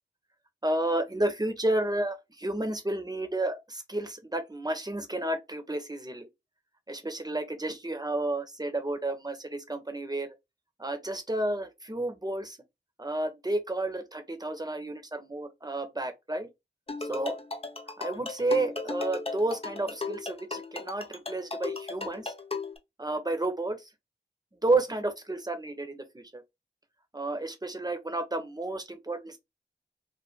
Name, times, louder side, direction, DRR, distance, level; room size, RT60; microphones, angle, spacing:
voice 1, 0.6-6.3 6.9-10.3 10.8-12.6 13.0-16.5 17.1-17.3 18.0-22.3 23.0-23.8 24.6-26.4 27.1-29.4, right 2 dB, 20° right, 0.9 m, -31 dB
sound 1, 16.9-22.8, left 3 dB, 30° left, 0.6 m, -36 dB
2.7 x 2.1 x 3.5 m
wide cardioid pair, 50°, 19 cm